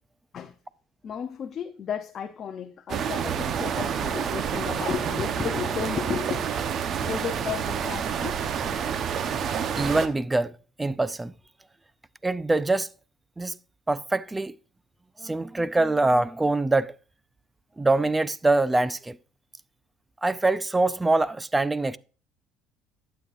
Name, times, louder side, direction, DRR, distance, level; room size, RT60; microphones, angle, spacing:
voice 1, 1.0-6.7 7.0-8.7, left 7 dB, 40° left, 0.6 m, -34 dB
sound 1, 2.9-10.1, right 7 dB, 45° right, 0.9 m, -28 dB
voice 2, 9.8-10.5 10.8-11.3 12.2-12.9 13.4-13.6 13.9-14.6 15.2-16.9 17.8-19.2 20.2-22.0, right 2 dB, 10° right, 0.4 m, -24 dB
11.5 x 8.1 x 2.5 m
cardioid pair, 115°, 0 cm